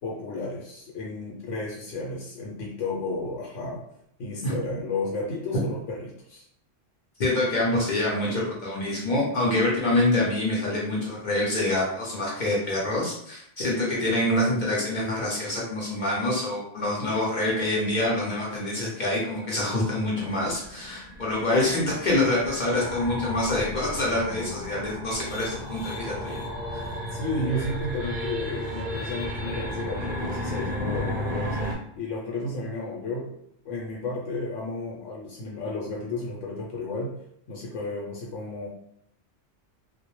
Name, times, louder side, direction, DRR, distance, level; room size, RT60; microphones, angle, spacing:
voice 1, 0.0-3.8 4.2-6.5 27.1-31.6 32.0-33.3 33.6-37.1 37.5-38.7, left 2 dB, 90° left, -3 dB, 0.9 m, -32 dB
voice 2, 7.2-26.4 26.7-26.8, left 1 dB, 55° left, -4 dB, 0.6 m, -26 dB
sound 1, 20.3-31.8, left 1 dB, 50° right, 0.5 m, -33 dB
2.1 x 2.0 x 2.9 m, 0.71 s
omnidirectional pair, 1.2 m